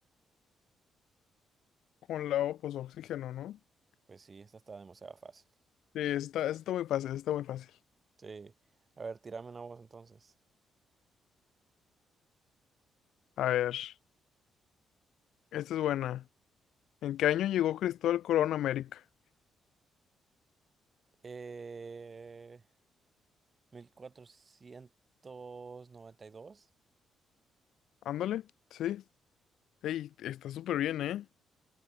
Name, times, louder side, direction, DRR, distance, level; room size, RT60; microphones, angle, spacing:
voice 1, 2.1-3.6 5.9-7.7 13.4-13.9 15.5-16.2 17.0-19.0 28.0-28.4 28.7-29.0 29.8-31.3, left 12 dB, 70° left, 0.7 m, -32 dB
voice 2, 4.1-5.4 8.2-8.5 9.0-10.3 21.2-22.6 23.7-24.9 25.2-26.7, right 4 dB, 40° right, 3.3 m, -46 dB
hypercardioid pair, 50°, 0 cm